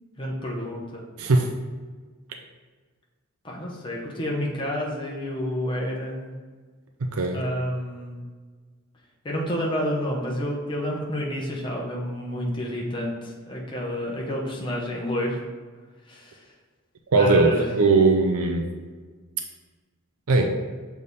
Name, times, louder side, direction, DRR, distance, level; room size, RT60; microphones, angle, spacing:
voice 1, 0.2-1.0 3.4-6.3 7.3-8.2 9.2-15.4 16.1-16.4 17.2-17.7, equal, 20° left, -3 dB, 0.9 m, -29 dB
voice 2, 1.2-1.5 7.1-7.4 17.1-18.7 20.3-20.6, right 3 dB, 90° right, 3 dB, 0.6 m, -20 dB
6.6 x 3.5 x 4.1 m, 1.4 s
head